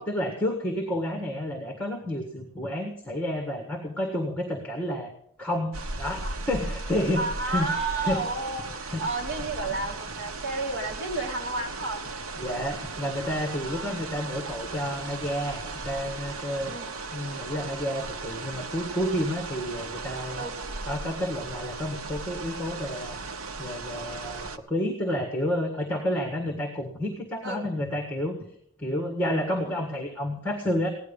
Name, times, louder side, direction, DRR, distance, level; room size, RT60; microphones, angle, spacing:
voice 1, 0.0-5.1 5.4-7.7 8.0-8.2 8.9-9.0 12.4-16.7 17.1-20.4 20.8-23.2 23.6-28.3 28.8-30.9, left 1 dB, 10° left, 2 dB, 1.7 m, -30 dB
sound 1, 5.7-24.6, right 3 dB, 80° right, 0.9 m, -37 dB
voice 2, 7.2-12.0 13.6-14.0 16.6-16.9 20.4-20.5 27.4-27.6, right 3 dB, 55° right, 0 dB, 2.7 m, -31 dB
16.5 x 11.0 x 5.4 m, 0.73 s
head